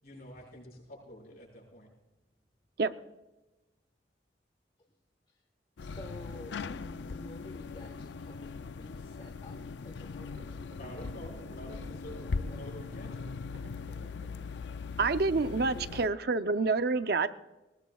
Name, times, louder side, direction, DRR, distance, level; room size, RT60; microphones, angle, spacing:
voice 1, 0.0-1.9 10.8-13.3, equal, 55° left, -2 dB, 6.0 m, -48 dB
sound 1, 5.8-16.1, left 4 dB, 70° left, 0.4 m, -40 dB
voice 2, 5.8-9.6 9.8-10.7 12.3-12.6 15.7-16.6, left 1 dB, 30° left, 2 dB, 1.3 m, -50 dB
sound 2, 10.2-14.9, equal, 80° right, 4.0 m, -52 dB
voice 3, 15.0-17.3, right 3 dB, 55° right, 11 dB, 0.6 m, -28 dB
20.5 x 19.5 x 2.3 m, 1.1 s
head